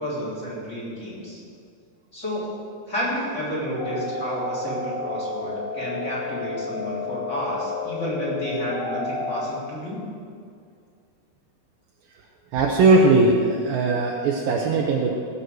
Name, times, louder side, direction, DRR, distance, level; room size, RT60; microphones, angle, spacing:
voice 1, 0.0-1.4 2.1-2.5 2.9-10.0, equal, 20° left, -7 dB, 3.7 m, -30 dB
sound 1, 3.8-9.5, left 3 dB, 60° left, 2.2 m, -31 dB
voice 2, 12.5-15.2, right 3 dB, 75° right, -1 dB, 2.5 m, -19 dB
17.0 x 6.4 x 7.9 m, 2.3 s
omnidirectional pair, 4.6 m